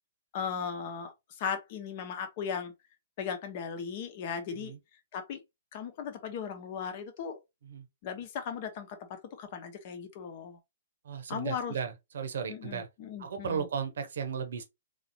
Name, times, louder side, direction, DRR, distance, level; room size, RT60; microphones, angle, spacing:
voice 1, 0.3-2.7 3.2-4.7 5.1-5.4 5.7-7.4 8.0-10.6 11.3-11.7 12.5-13.7, left 7 dB, 40° left, 0.9 m, -37 dB
voice 2, 11.0-12.9 13.2-14.6, right 6 dB, 60° right, 0.9 m, -35 dB
4.1 x 2.9 x 2.8 m
figure-of-eight pair, 115°, 0 cm